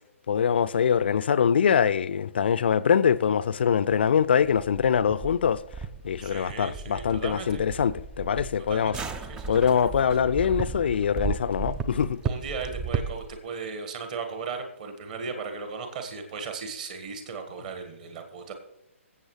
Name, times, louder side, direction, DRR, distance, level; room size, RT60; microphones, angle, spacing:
voice 1, 0.3-5.6 6.0-9.0 9.5-12.2, left 7 dB, 45° left, 0.4 m, -23 dB
sound 1, 3.9-13.4, right 5 dB, 10° right, 0.4 m, -35 dB
voice 2, 6.2-7.6 8.7-9.0 9.3-9.6 12.2-18.5, right 5 dB, 35° right, 1.5 m, -36 dB
22.5 x 7.6 x 3.2 m
figure-of-eight pair, 130°, 7 cm